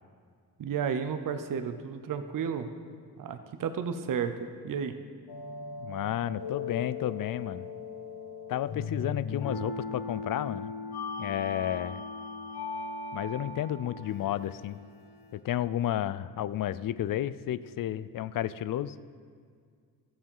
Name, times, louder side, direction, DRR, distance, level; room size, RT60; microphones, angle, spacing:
voice 1, 0.6-2.7 3.2-4.3 4.6-5.0, right 7 dB, 55° right, 8 dB, 0.8 m, -32 dB
sound 1, 5.3-15.4, left 4 dB, 75° left, 1.2 m, -38 dB
voice 2, 5.8-7.7 8.5-10.7 11.2-12.0 13.1-14.8 15.3-19.0, left 12 dB, 60° left, 16 dB, 0.5 m, -32 dB
14.0 x 7.2 x 5.5 m, 2.1 s
cardioid pair, 85°, 39 cm